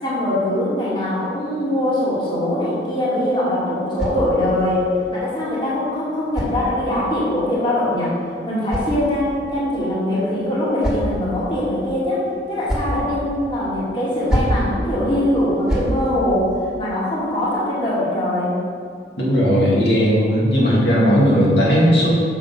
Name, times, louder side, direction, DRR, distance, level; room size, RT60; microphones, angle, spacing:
voice 1, 0.0-8.1 8.4-16.5 16.8-18.6, left 1 dB, 30° left, -8 dB, 2.1 m, -22 dB
sound 1, 3.1-4.7 5.7-7.2 8.2-9.5 10.3-11.4 12.3-13.0 14.0-14.7 15.4-16.0, equal, 5° right, 2.2 m, -28 dB
voice 2, 19.2-22.1, equal, 70° left, -6 dB, 2.2 m, -16 dB
6.9 x 6.5 x 5.3 m, 2.3 s
head